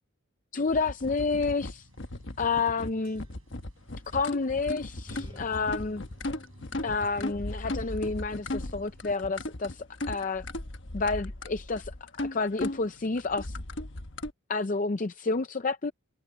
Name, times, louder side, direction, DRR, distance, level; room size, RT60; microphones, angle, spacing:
voice 1, 0.5-1.9 2.4-3.2 4.1-6.0 6.8-10.4 10.9-13.6 14.5-15.9, left 4 dB, 40° left, 0.5 m, -30 dB
sound 1, 0.6-9.1, right 1 dB, 80° right, 6.9 m, -59 dB
sound 2, 0.7-14.3, left 1 dB, 60° left, 1.2 m, -37 dB
sound 3, 2.5-3.7 4.0-4.2 5.1-7.6, equal, 25° right, 2.4 m, -52 dB
head